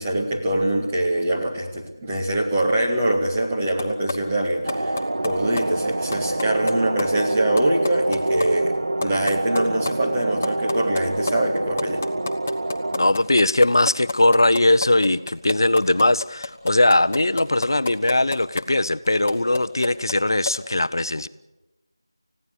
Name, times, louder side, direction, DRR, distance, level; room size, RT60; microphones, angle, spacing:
voice 1, 0.0-12.0, right 1 dB, 10° right, -3 dB, 2.1 m, -23 dB
sound 1, 3.8-4.1 4.4-5.3 5.6-5.7 5.9-6.7 7.0-7.1 7.4-8.5 8.7-8.8 9.0-9.9 10.2-18.6 19.1-20.2 20.5-20.6, left 3 dB, 20° left, 1.3 m, -28 dB
sound 2, 4.7-13.1, right 2 dB, 60° right, 0.8 m, -26 dB
voice 2, 13.0-21.3, left 2 dB, 55° left, 14 dB, 0.7 m, -20 dB
30.0 x 16.5 x 8.1 m, 1.1 s
figure-of-eight pair, 175°, 2 cm